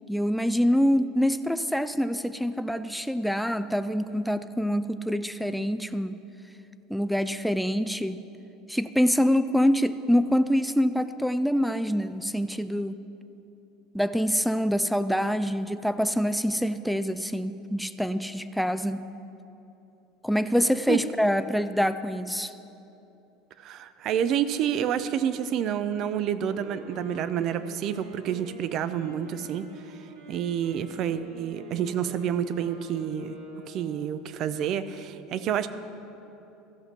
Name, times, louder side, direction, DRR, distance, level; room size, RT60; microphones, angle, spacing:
voice 1, 0.1-6.2 6.9-8.2 8.7-13.0 13.9-19.1 20.2-22.5, equal, ahead, 11 dB, 0.3 m, -25 dB
voice 2, 23.6-29.7 30.3-33.3 33.7-35.7, right 9 dB, 50° right, 13 dB, 0.5 m, -28 dB
Wind instrument woodwind instrument, 26.4-34.3, right 1 dB, 80° right, 1.6 m, -46 dB
14.5 x 5.2 x 5.9 m, 2.9 s
supercardioid pair, 100°, 0 cm